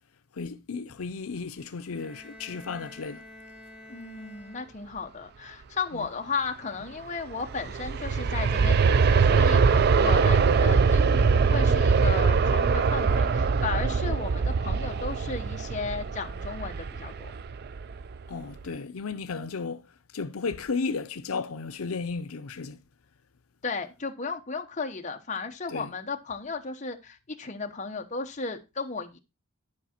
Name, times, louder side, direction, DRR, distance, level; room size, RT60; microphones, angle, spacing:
voice 1, 0.4-3.2 5.9-6.1 18.3-19.8 20.1-22.8 25.7-25.9, left 4 dB, 85° left, 0.6 m, -34 dB
Bowed string instrument, 1.9-5.1, left 1 dB, 5° right, 1.7 m, -49 dB
voice 2, 3.9-17.3 23.6-29.2, left 4 dB, 35° left, 1.0 m, -35 dB
Aircraft, 7.3-18.2 18.6-18.7, right 5 dB, 50° right, 0.4 m, -23 dB
11.0 x 4.8 x 4.3 m
head